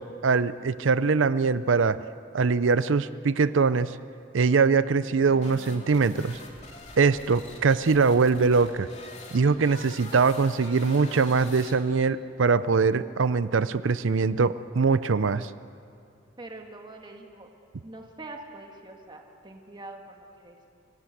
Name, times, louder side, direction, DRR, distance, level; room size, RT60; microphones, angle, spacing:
voice 1, 0.0-2.0 2.3-3.9 4.3-6.4 7.0-8.9 9.3-15.5, right 4 dB, 80° right, 15 dB, 0.6 m, -22 dB
sound 1, 5.1-12.1, left 3 dB, 35° left, 2.8 m, -45 dB
voice 2, 16.4-17.5 17.8-20.7, right 2 dB, 25° right, 2 dB, 1.7 m, -44 dB
25.0 x 18.0 x 7.9 m, 2.5 s
head